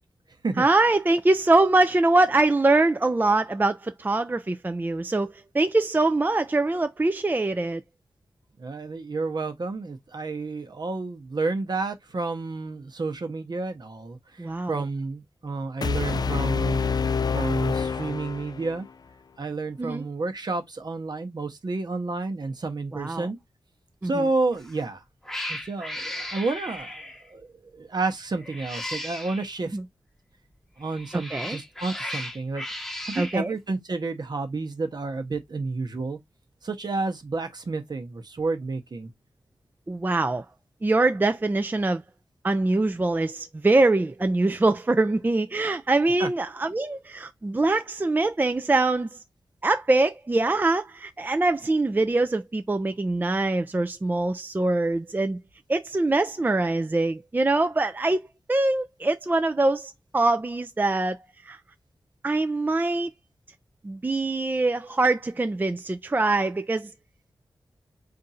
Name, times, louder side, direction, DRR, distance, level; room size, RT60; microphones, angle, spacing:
voice 1, 0.6-7.8 14.4-14.8 19.8-20.1 22.9-23.3 24.0-24.1 29.7-29.8 31.1-31.6 33.2-33.5 39.9-40.4 40.8-42.0 42.4-49.2 49.6-55.4 55.7-58.2 58.5-61.2 61.4-61.6 62.2-63.1 63.8-66.9, right 2 dB, 20° right, 0.4 m, -23 dB
voice 2, 8.6-16.8 17.3-18.9 19.4-23.4 24.0-25.0 25.5-27.5 27.7-29.8 30.8-32.6 33.0-36.2 36.6-39.1 46.2-46.3, right 3 dB, 55° right, 0.9 m, -30 dB
sound 1, 15.8-18.9, left 5 dB, 50° left, 0.3 m, -27 dB
Cat, 24.5-24.8 25.2-27.3 28.4-29.5 30.8-33.4, left 1 dB, 5° left, 0.9 m, -35 dB
3.6 x 2.6 x 4.2 m
cardioid pair, 55°, 9 cm